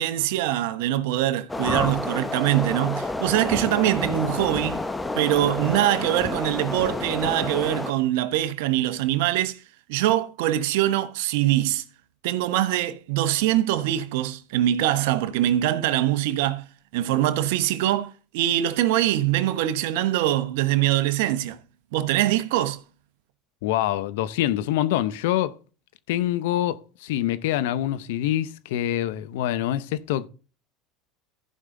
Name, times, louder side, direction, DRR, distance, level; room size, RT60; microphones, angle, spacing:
voice 1, 0.0-4.8 5.1-9.6 9.9-11.8 12.2-16.7 16.9-21.6 21.9-22.8, right 13 dB, 75° right, 0.9 m, -23 dB
sound 1, 1.5-7.9, left 2 dB, 10° left, 0.8 m, -29 dB
voice 2, 23.6-25.6 26.1-30.3, left 13 dB, 80° left, 0.7 m, -25 dB
15.0 x 5.5 x 3.8 m
supercardioid pair, 100°, 0 cm